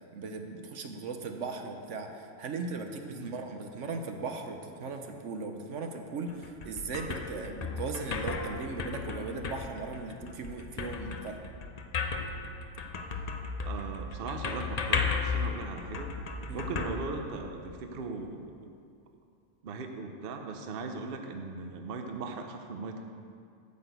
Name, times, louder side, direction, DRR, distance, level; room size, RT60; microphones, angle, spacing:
voice 1, 0.1-11.4 16.5-16.6, right 4 dB, 75° right, 5 dB, 1.2 m, -38 dB
sound 1, 6.3-17.8, left 4 dB, 45° left, 0.6 m, -35 dB
voice 2, 13.6-16.1 16.5-18.7 19.6-23.0, right 3 dB, 55° right, 4 dB, 0.9 m, -38 dB
8.9 x 6.0 x 8.1 m, 2.3 s
omnidirectional pair, 1.3 m